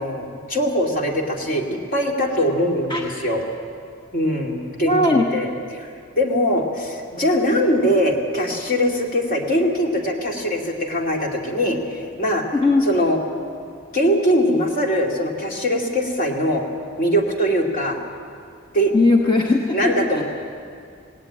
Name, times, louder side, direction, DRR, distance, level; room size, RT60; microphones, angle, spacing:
voice 1, 0.0-3.4 4.1-5.9 6.1-12.5 12.8-13.2 13.9-16.6 17.0-18.0 18.7-18.9 19.7-20.2, equal, 45° left, 0 dB, 2.5 m, -22 dB
voice 2, 4.8-5.3 12.5-12.8 18.9-20.2, left 2 dB, 25° left, 0 dB, 1.1 m, -18 dB
18.5 x 18.0 x 8.7 m, 2.3 s
head